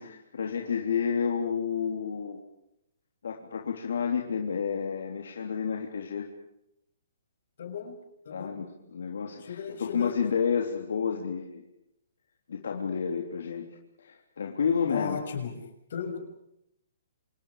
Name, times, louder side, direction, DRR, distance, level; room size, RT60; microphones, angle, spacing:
voice 1, 0.0-2.4 3.2-6.3 8.3-11.6 12.5-13.7 14.0-15.2, left 6 dB, 75° left, 1 dB, 3.6 m, -30 dB
voice 2, 7.6-7.9 8.3-8.6 9.4-10.1 14.9-15.5 15.9-16.2, left 7 dB, 55° left, 5 dB, 6.9 m, -35 dB
29.0 x 27.5 x 5.1 m, 0.80 s
hypercardioid pair, 170°, 0 cm